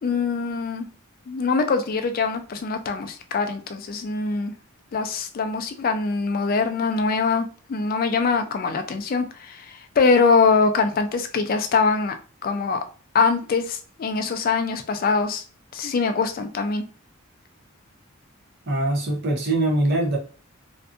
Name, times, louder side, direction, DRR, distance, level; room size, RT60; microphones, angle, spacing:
voice 1, 0.0-0.9 1.3-4.5 4.9-12.1 12.4-12.8 13.1-15.4 15.7-16.8, left 4 dB, 45° left, 7 dB, 0.3 m, -23 dB
voice 2, 18.7-20.2, right 1 dB, 50° right, 0 dB, 0.8 m, -22 dB
2.5 x 2.3 x 2.5 m, 0.37 s
head